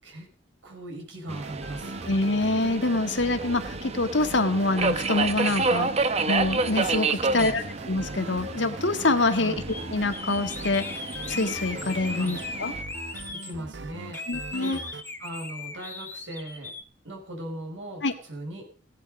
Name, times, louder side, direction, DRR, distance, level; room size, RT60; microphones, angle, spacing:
voice 1, 0.6-2.0 7.1-7.7 9.3-9.6 12.1-12.4 13.4-14.2 14.6-14.8 15.2-16.7 17.0-18.7, right 1 dB, 80° right, 1 dB, 6.5 m, -39 dB
Subway metro underground, 1.3-12.8, right 3 dB, 35° right, 1.0 m, -30 dB
sound 1, 1.3-15.0, right 3 dB, 65° right, 1.0 m, -41 dB
voice 2, 2.0-5.9 6.3-9.5 9.9-10.9 11.3-12.7 14.3-14.8 18.0-18.1, left 2 dB, 70° left, 8 dB, 1.7 m, -25 dB
sound 2, 9.7-9.9 10.1-13.5 14.1-16.8, left 3 dB, 10° left, 1.5 m, -38 dB
16.5 x 11.0 x 5.3 m, 0.40 s
head